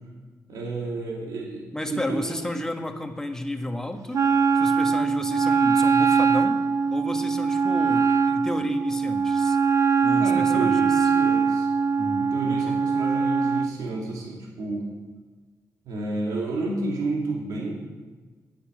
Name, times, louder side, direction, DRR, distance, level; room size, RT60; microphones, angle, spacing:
voice 1, 0.5-2.6 10.0-11.7 12.1-14.9 15.9-17.7, right 2 dB, 90° right, -2 dB, 2.5 m, -31 dB
voice 2, 1.7-4.2 4.5-6.6 6.9-9.6 10.0-11.0 12.0-12.8, left 1 dB, 10° left, 5 dB, 1.4 m, -32 dB
Wind instrument woodwind instrument, 4.1-13.7, right 5 dB, 60° right, 0.6 m, -22 dB
9.6 x 8.4 x 8.8 m, 1.4 s
cardioid pair, 95°, 6 cm